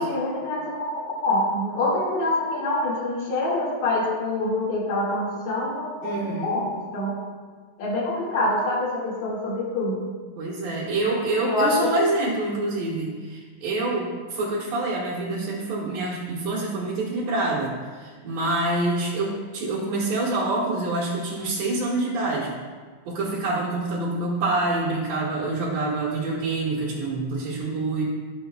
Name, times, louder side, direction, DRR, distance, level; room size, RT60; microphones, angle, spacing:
voice 1, 0.0-7.2 7.8-10.0 11.4-11.9, left 2 dB, 70° left, -7 dB, 3.4 m, -25 dB
voice 2, 6.0-6.7 10.4-22.6 23.1-28.0, right 2 dB, 65° right, -7 dB, 2.7 m, -26 dB
16.0 x 7.2 x 2.3 m, 1.5 s
omnidirectional pair, 3.4 m